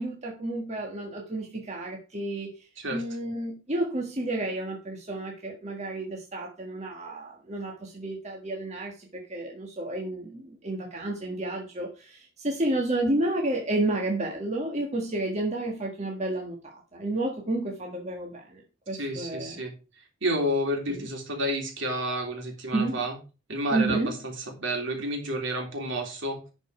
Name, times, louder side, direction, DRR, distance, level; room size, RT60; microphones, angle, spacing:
voice 1, 0.0-19.6 20.9-21.0 22.7-23.0 23.7-24.2, right 2 dB, 35° right, 1.5 m, -31 dB
voice 2, 19.0-19.7 20.2-23.1 23.5-26.4, right 1 dB, 60° right, 3.4 m, -30 dB
11.0 x 5.3 x 4.9 m
head